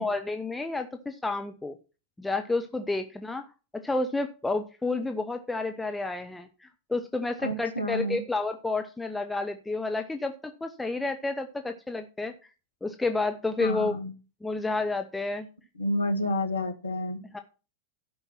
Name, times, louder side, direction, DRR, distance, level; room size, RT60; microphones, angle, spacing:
voice 1, 0.0-1.7 2.2-3.5 3.7-12.3 12.8-13.9 14.4-15.5 17.3-17.4, left 3 dB, 10° left, 7 dB, 0.9 m, -30 dB
voice 2, 7.4-8.2 13.6-14.1 15.7-17.2, left 1 dB, 75° left, 8 dB, 1.5 m, -29 dB
12.0 x 5.5 x 6.0 m, 0.33 s
figure-of-eight pair, 90°, 0 cm